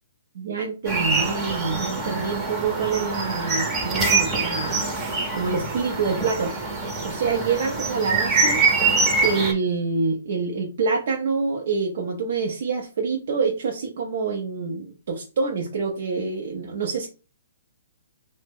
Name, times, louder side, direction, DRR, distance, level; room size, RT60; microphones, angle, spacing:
voice 1, 0.3-5.0 5.3-6.5 7.0-8.6 9.2-17.1, right 5 dB, 60° right, 1 dB, 0.5 m, -26 dB
sound 1, 0.9-9.5, right 3 dB, 20° right, 0.7 m, -24 dB
2.9 x 2.0 x 3.5 m, 0.34 s
hypercardioid pair, 140°, 0 cm